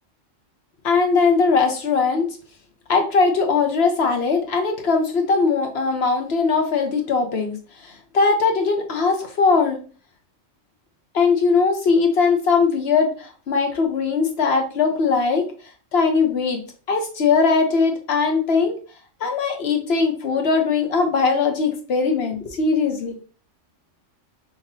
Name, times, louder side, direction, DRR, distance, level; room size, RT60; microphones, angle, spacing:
voice 1, 0.8-2.3 2.9-7.6 7.8-9.8 11.1-15.5 15.9-16.6 16.9-18.7 19.2-23.1, left 4 dB, 55° left, 4 dB, 1.1 m, -20 dB
5.6 x 3.0 x 2.7 m, 0.38 s
omnidirectional pair, 1.3 m